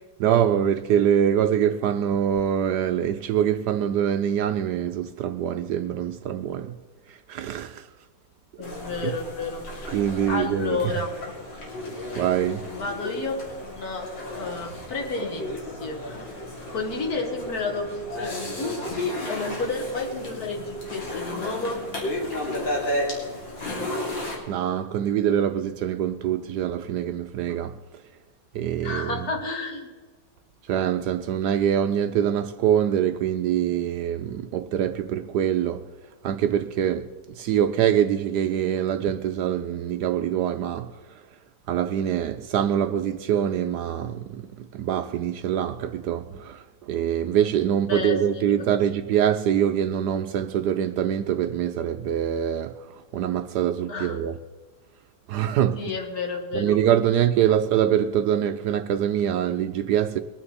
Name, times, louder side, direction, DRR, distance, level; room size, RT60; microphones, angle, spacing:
voice 1, 0.2-6.7 7.3-7.8 9.0-9.1 9.9-10.8 12.2-12.7 24.5-27.7 28.5-29.3 30.7-35.8 36.2-37.1 37.4-40.9 41.7-46.6 46.9-52.7 53.1-54.4 55.3-55.8 56.5-60.2, right 9 dB, 70° right, 1.0 m, -24 dB
sound 1, 8.6-24.4, left 1 dB, 70° left, 3.8 m, -33 dB
voice 2, 8.6-9.9 10.3-11.1 12.7-13.4 13.6-14.1 14.3-15.5 15.8-16.2 16.7-21.8 28.8-29.9 47.9-48.7 53.9-54.2 55.8-56.8, left 3 dB, 50° left, 2.2 m, -31 dB
22.0 x 9.6 x 4.2 m
omnidirectional pair, 2.1 m